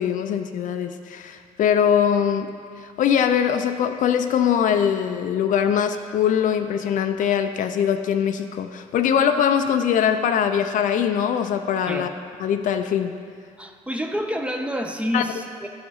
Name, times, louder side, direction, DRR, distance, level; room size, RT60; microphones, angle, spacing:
voice 1, 0.0-2.5 2.8-12.1 12.4-13.2 15.1-15.2, left 8 dB, 60° left, 8 dB, 0.5 m, -22 dB
voice 2, 13.6-15.7, equal, 10° right, 4 dB, 0.6 m, -28 dB
12.0 x 4.9 x 4.0 m, 2.3 s
cardioid pair, 100°, 15 cm